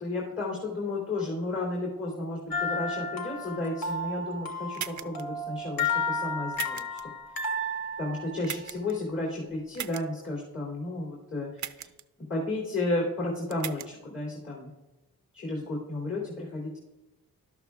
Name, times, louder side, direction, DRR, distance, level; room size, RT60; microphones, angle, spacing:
voice 1, 0.0-7.0 8.0-11.9 12.3-14.7 15.3-16.8, left 2 dB, 45° left, -5 dB, 3.2 m, -33 dB
sound 1, 2.5-8.8, left 2 dB, 75° left, 1.5 m, -33 dB
sound 2, 4.7-5.2 6.5-7.0 8.4-8.9 9.7-10.0 11.6-12.0 13.5-13.9, right 10 dB, 55° right, 0.5 m, -37 dB
12.0 x 12.0 x 2.4 m, 1.0 s
wide cardioid pair, 115°, 35 cm